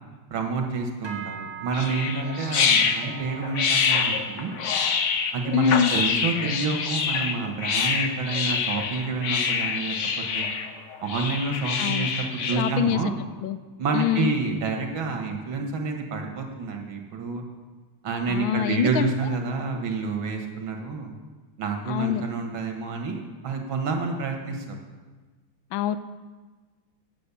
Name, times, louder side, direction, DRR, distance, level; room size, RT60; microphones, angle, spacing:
voice 1, 0.3-4.5 5.3-10.5 11.0-13.1 13.8-17.4 18.0-21.1 21.6-24.8, right 4 dB, 85° right, 3 dB, 2.2 m, -28 dB
sound 1, 1.0-10.6 10.9-11.3 11.7-12.0 12.6-12.7, right 7 dB, 15° right, 1.0 m, -45 dB
sound 2, 1.7-12.7, left 6 dB, 60° left, 0.8 m, -26 dB
voice 2, 5.5-5.9 11.8-12.1 12.6-13.1 13.4-13.6 13.9-14.3 18.3-19.1 21.9-22.2 25.7-26.0, left 10 dB, 80° left, 12 dB, 1.3 m, -24 dB
8.9 x 8.6 x 6.9 m, 1.3 s
omnidirectional pair, 2.2 m